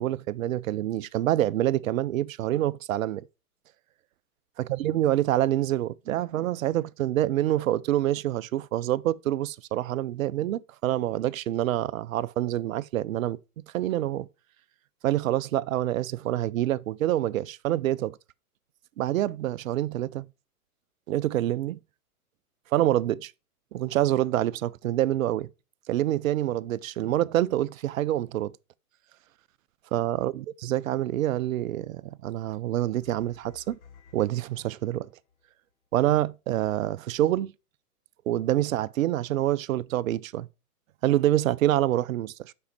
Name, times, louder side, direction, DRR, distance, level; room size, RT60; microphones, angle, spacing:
voice 1, 0.0-3.3 4.6-13.4 13.7-14.3 15.0-18.2 19.0-20.3 21.1-21.8 22.7-23.3 23.7-25.5 25.9-28.5 29.9-33.8 34.1-35.1 35.9-37.5 38.3-40.5 41.0-42.5, right 13 dB, 60° right, 0.5 m, -26 dB
sound 1, 33.0-35.4, left 6 dB, 45° left, 2.2 m, -55 dB
6.7 x 5.3 x 4.5 m
hypercardioid pair, 125°, 46 cm